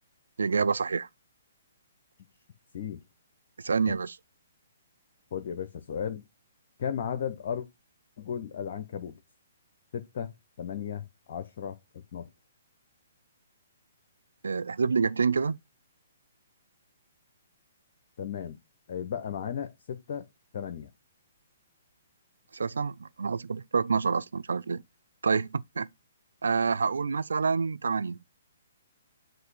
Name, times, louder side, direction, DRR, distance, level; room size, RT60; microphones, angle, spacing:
voice 1, 0.4-1.1 3.6-4.2 14.4-15.6 22.5-24.8 25.2-25.9 26.4-28.2, right 5 dB, 80° right, 0.4 m, -27 dB
voice 2, 5.3-6.2 6.8-7.7 8.2-9.2 9.9-10.3 10.6-12.3 18.2-18.6 18.9-20.3 20.5-20.9, left 8 dB, 55° left, 0.7 m, -35 dB
7.8 x 2.6 x 4.8 m
hypercardioid pair, 135°, 0 cm